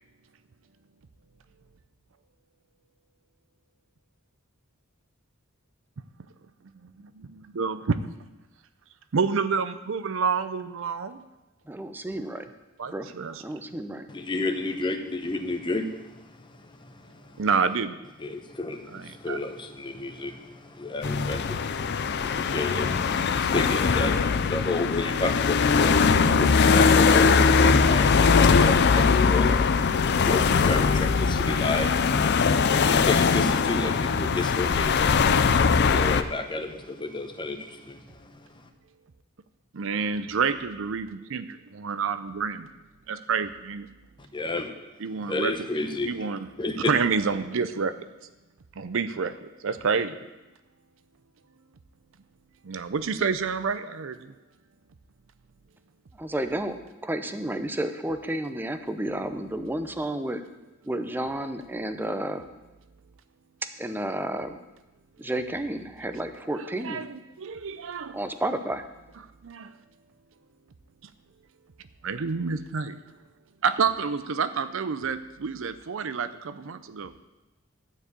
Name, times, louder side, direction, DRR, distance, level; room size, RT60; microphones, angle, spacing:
voice 1, 6.8-8.0 9.1-11.2 12.8-13.4 17.4-18.0 18.9-19.4 39.7-42.7 43.1-43.9 45.0-45.5 46.0-46.4 46.8-48.1 48.8-50.2 52.6-54.3 66.6-68.2 69.4-69.7 72.0-73.0 73.6-77.1, right 5 dB, 65° right, 12 dB, 0.5 m, -28 dB
voice 2, 11.7-12.5 12.9-13.1 13.4-14.1 56.1-60.4 60.8-62.5 63.8-64.6 65.2-67.1 68.1-68.8, right 1 dB, 10° right, 9 dB, 0.6 m, -31 dB
voice 3, 14.1-17.4 18.2-38.7 44.3-44.9 45.2-46.2 46.6-46.9, left 2 dB, 25° left, 6 dB, 0.8 m, -32 dB
sound 1, 21.0-36.2, left 5 dB, 55° left, 0.5 m, -21 dB
12.0 x 4.8 x 8.2 m, 1.1 s
head